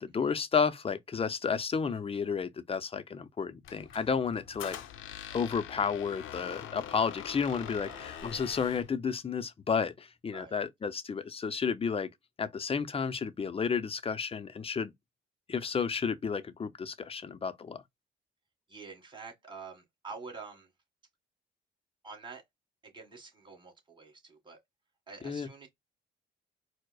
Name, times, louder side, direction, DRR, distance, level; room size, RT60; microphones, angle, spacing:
voice 1, 0.0-4.8 5.3-12.1 12.4-14.9 15.5-17.8 25.2-25.5, left 6 dB, 30° left, 0.5 m, -32 dB
Squeak, 3.6-8.9, left 10 dB, 85° left, 0.6 m, -44 dB
voice 2, 18.7-20.7 22.0-22.4 22.8-24.6 25.1-25.7, right 4 dB, 25° right, 1.8 m, -47 dB
4.6 x 2.1 x 2.3 m
cardioid pair, 90°, 20 cm